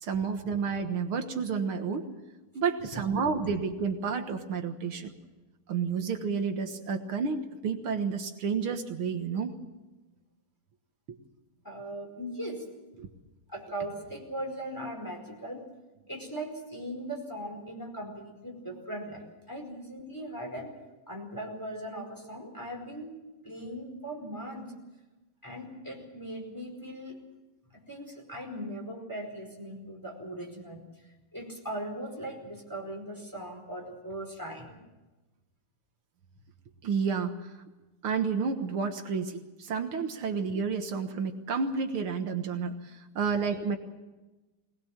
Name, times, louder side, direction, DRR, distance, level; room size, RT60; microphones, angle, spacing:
voice 1, 0.0-2.1 2.5-5.1 5.7-9.6 13.0-13.1 36.8-37.5 38.0-43.8, right 5 dB, 75° right, 5 dB, 2.3 m, -30 dB
voice 2, 11.6-12.6 13.5-15.6 16.1-20.7 21.1-23.2 23.4-24.7 25.4-27.2 27.7-30.8 31.3-34.8, right 1 dB, 10° left, 0 dB, 4.8 m, -39 dB
22.0 x 19.5 x 7.3 m, 1.1 s
omnidirectional pair, 2.3 m